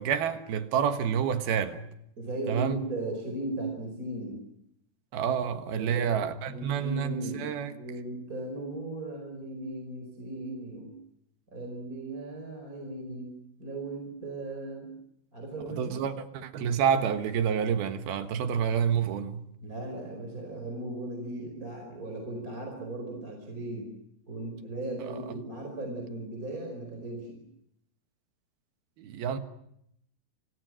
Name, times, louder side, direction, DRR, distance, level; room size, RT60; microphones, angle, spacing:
voice 1, 0.0-1.8 2.5-2.8 5.1-7.7 15.7-19.4 29.0-29.4, right 8 dB, 75° right, 3.3 m, -28 dB
voice 2, 2.2-4.4 5.8-6.1 6.4-10.9 11.5-13.3 13.6-14.9 15.3-15.9 19.6-23.9 24.3-27.4, right 2 dB, 20° right, 5.1 m, -37 dB
28.0 x 26.0 x 6.4 m
omnidirectional pair, 4.6 m